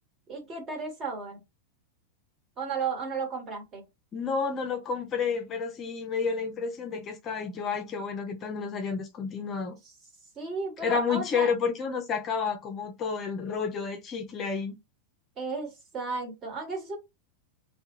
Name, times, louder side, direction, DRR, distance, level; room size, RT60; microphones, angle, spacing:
voice 1, 0.3-1.4 2.6-3.8 10.4-11.5 15.4-17.0, right 4 dB, 30° right, 1.2 m, -34 dB
voice 2, 4.1-9.8 10.8-14.8, left 5 dB, 30° left, 0.5 m, -30 dB
2.3 x 2.1 x 2.9 m
figure-of-eight pair, 90°, 0 cm